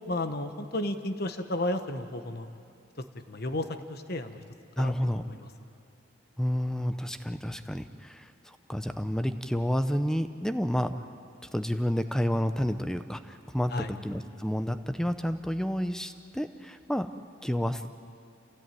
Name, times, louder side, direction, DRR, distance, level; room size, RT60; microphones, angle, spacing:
voice 1, 0.0-2.5 3.3-4.4 4.8-5.5 13.7-13.9, left 1 dB, 50° left, 8 dB, 1.2 m, -33 dB
voice 2, 4.8-5.2 6.4-11.0 11.5-17.1 17.4-17.8, equal, 5° left, 9 dB, 0.7 m, -30 dB
27.5 x 16.5 x 9.2 m, 2.6 s
head